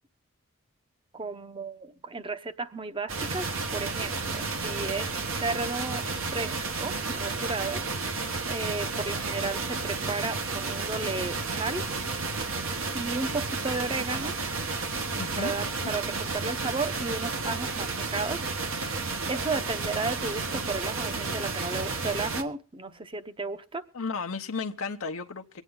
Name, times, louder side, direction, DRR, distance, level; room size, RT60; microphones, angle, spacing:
voice 1, 1.1-11.9 12.9-14.3 15.4-18.4 19.3-23.8, right 3 dB, 25° right, 0.8 m, -34 dB
sound 1, 3.1-22.4, right 4 dB, 65° right, 1.2 m, -32 dB
voice 2, 15.2-15.5 15.8-15.9 23.9-25.6, left 4 dB, 75° left, 0.8 m, -34 dB
24.0 x 9.1 x 3.8 m
head